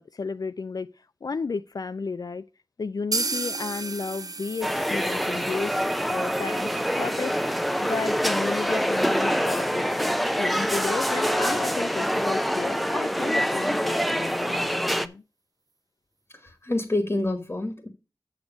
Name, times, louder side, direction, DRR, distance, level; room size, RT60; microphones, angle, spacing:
voice 1, 0.0-2.4 2.8-5.8 6.1-15.2, left 4 dB, 60° left, 0.3 m, -33 dB
sound 1, 3.1-10.8 11.1-11.2 11.6-11.7 12.1-12.2, right 3 dB, 55° right, 0.6 m, -37 dB
sound 2, 4.6-15.1, equal, ahead, 0.5 m, -25 dB
voice 2, 16.4-17.9, left 2 dB, 35° left, 1.3 m, -27 dB
7.2 x 6.4 x 5.1 m
wide cardioid pair, 65°, 7 cm